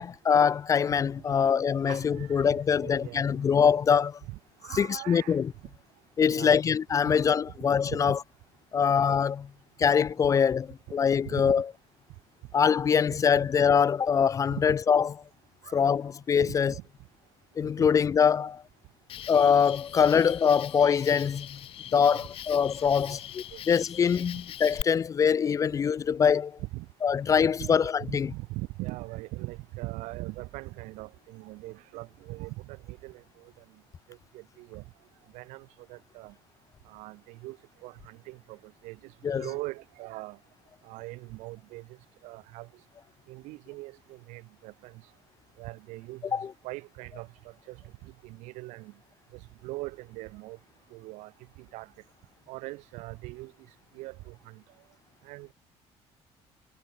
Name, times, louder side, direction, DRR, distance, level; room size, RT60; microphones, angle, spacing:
voice 1, 0.0-4.2 4.8-5.5 6.2-8.2 8.7-9.5 9.8-11.6 12.5-15.2 15.7-16.7 17.6-18.6 19.3-21.6 21.9-26.6 27.0-28.3 39.2-39.5 46.3-46.5, left 7 dB, 30° left, 0.3 m, -24 dB
voice 2, 1.8-3.4 4.3-5.4 6.3-6.7 7.1-7.2 7.9-8.1 11.3-11.5 14.5-14.6 15.6-15.8 16.4-16.8 17.8-17.9 22.1-22.2 23.1-23.2 23.5-23.6 26.6-26.9 27.6-33.5 34.1-34.8 35.3-36.3 36.9-37.6 37.8-40.4 40.8-41.9 42.2-42.7 43.3-45.0 45.6-47.3 47.7-47.8 48.0-48.9 49.3-50.6 50.9-51.3 51.6-51.9 52.5-53.5 53.9-54.6 55.2-55.5, right 21 dB, 90° right, 1.6 m, -41 dB
Cricket, 19.1-24.8, left 12 dB, 55° left, 0.9 m, -42 dB
cardioid pair, 125°, 12 cm